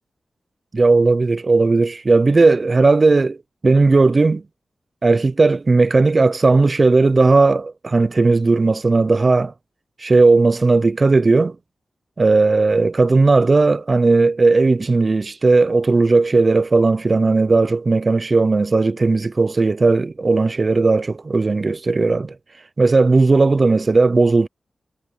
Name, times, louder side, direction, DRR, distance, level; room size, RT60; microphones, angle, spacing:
voice 1, 0.7-3.4 3.6-4.4 5.0-9.5 10.0-11.6 12.2-22.4 22.8-24.5, right 3 dB, 50° right, 0.7 m, -16 dB
cardioid pair, 40°, 0 cm